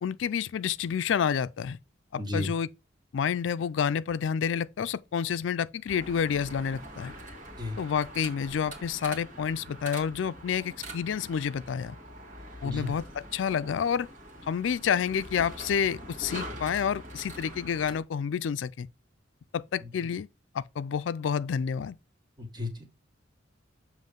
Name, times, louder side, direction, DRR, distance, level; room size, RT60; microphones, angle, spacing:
voice 1, 0.0-1.8 2.1-2.7 3.1-7.1 7.8-12.0 12.6-14.1 14.5-18.9 19.5-20.3 20.5-22.0, left 7 dB, 70° left, 0.4 m, -29 dB
voice 2, 2.2-2.5 7.6-7.8 12.6-12.9 19.8-19.9 22.4-23.0, left 2 dB, 25° right, 1.8 m, -34 dB
sound 1, 5.9-18.0, right 1 dB, 40° right, 1.9 m, -44 dB
7.5 x 3.1 x 5.2 m
head